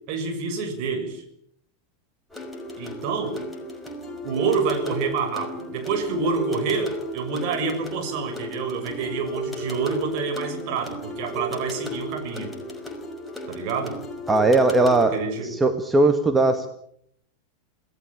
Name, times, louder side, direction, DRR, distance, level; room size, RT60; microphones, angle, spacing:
voice 1, 0.1-1.2 2.8-3.4 4.2-12.5 13.5-14.0 15.1-15.6, right 4 dB, 45° right, 5 dB, 6.7 m, -27 dB
sound 1, 2.3-15.1, equal, 5° left, 5.7 m, -34 dB
voice 2, 14.3-15.2 15.4-16.7, right 2 dB, 10° right, 5 dB, 2.1 m, -19 dB
27.5 x 18.0 x 8.9 m, 0.70 s
figure-of-eight pair, 90°, 0 cm